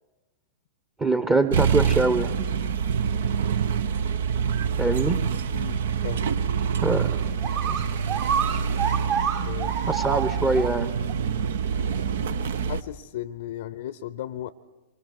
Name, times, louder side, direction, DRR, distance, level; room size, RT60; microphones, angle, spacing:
voice 1, 1.0-2.4 4.8-5.2 6.8-7.1 7.6-7.8 9.9-10.9, right 3 dB, 15° right, 10 dB, 1.0 m, -23 dB
sound 1, 1.5-12.8, right 7 dB, 65° right, 0.7 m, -26 dB
voice 2, 5.5-6.3 9.4-9.7 12.7-14.5, left 12 dB, 60° left, 16 dB, 0.6 m, -35 dB
sound 2, 7.1-7.2 7.4-10.7 11.1-11.2 11.9-12.0, right 7 dB, 45° right, 1.7 m, -28 dB
27.0 x 24.0 x 4.8 m, 1.1 s
hypercardioid pair, 110°, 0 cm